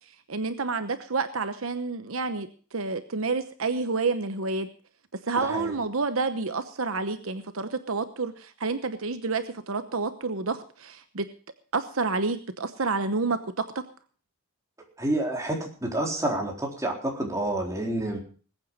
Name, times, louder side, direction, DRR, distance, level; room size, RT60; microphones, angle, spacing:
voice 1, 0.3-4.7 5.3-11.3 11.7-13.8, right 4 dB, 70° right, 10 dB, 1.0 m, -29 dB
voice 2, 5.4-5.7 15.0-18.2, right 1 dB, 15° right, 0 dB, 4.0 m, -29 dB
20.5 x 9.0 x 5.4 m, 0.41 s
head